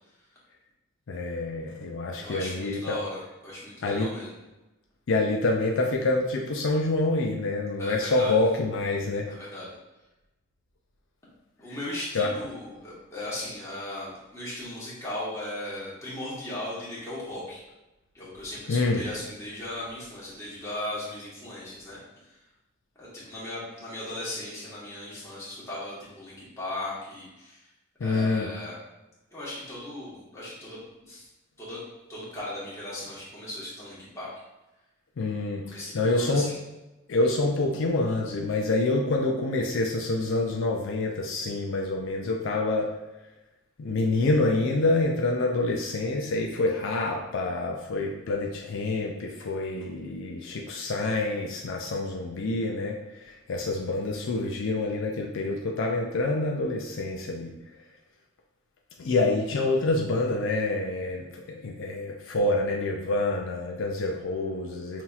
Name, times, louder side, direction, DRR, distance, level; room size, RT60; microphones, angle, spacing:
voice 1, 1.1-3.0 3.8-4.1 5.1-9.3 12.1-12.3 18.7-19.0 28.0-28.5 35.2-36.5 37.1-42.9 43.8-53.0 53.2-57.5 59.0-65.0, left 2 dB, 60° left, 0 dB, 0.4 m, -27 dB
voice 2, 2.2-4.3 7.8-8.3 9.3-9.7 11.6-17.6 18.1-22.0 22.3-22.4 23.0-27.6 28.0-28.7 29.3-31.3 31.6-31.8 32.1-34.3 35.7-36.6, left 1 dB, 15° left, -8 dB, 1.4 m, -37 dB
5.8 x 2.8 x 2.4 m, 1.0 s
head